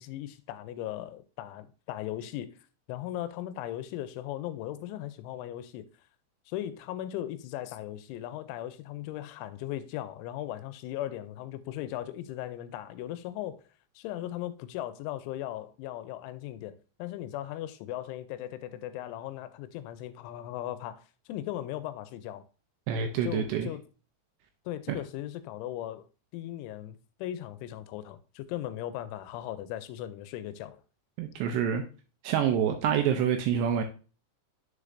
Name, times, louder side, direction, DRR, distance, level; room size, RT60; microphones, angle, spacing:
voice 1, 0.0-2.5 2.9-5.8 6.5-13.6 14.0-16.7 17.0-22.5 23.2-23.8 24.7-26.1 26.3-30.8, left 13 dB, 85° left, 2.9 m, -38 dB
voice 2, 22.9-23.7 24.9-25.0 31.2-31.8 32.2-33.8, right 8 dB, 85° right, 2.5 m, -27 dB
7.0 x 6.6 x 2.5 m
omnidirectional pair, 5.5 m